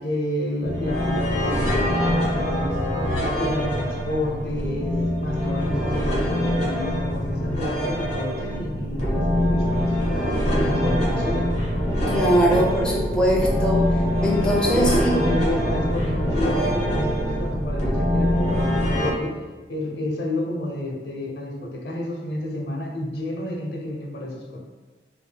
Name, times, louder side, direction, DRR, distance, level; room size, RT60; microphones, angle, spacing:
voice 1, 0.0-2.8 3.4-11.5 14.7-19.4 19.7-24.6, left 1 dB, 65° left, -1 dB, 0.7 m, -30 dB
sound 1, 0.6-19.1, equal, 40° left, 1.1 m, -24 dB
voice 2, 12.1-15.3, equal, 5° left, -4 dB, 0.5 m, -21 dB
5.2 x 2.6 x 2.2 m, 1.3 s
head